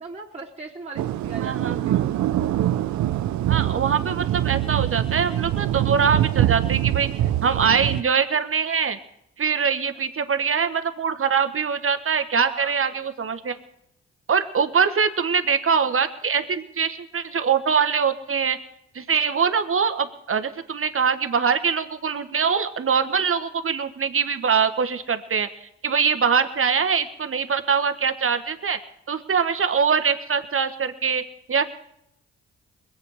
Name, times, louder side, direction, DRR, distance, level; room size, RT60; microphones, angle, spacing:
voice 1, 0.0-2.0 12.3-13.3, right 4 dB, 20° right, -4 dB, 2.9 m, -39 dB
sound 1, 1.0-8.0, right 13 dB, 75° right, 0.6 m, -24 dB
voice 2, 1.4-2.2 3.5-7.1 7.4-9.0 9.4-13.5 14.3-18.6 18.9-25.5 25.8-28.8 29.1-31.2 31.5-31.6, right 6 dB, 50° right, 10 dB, 1.3 m, -23 dB
22.0 x 8.4 x 4.9 m, 0.78 s
supercardioid pair, 45°, 29 cm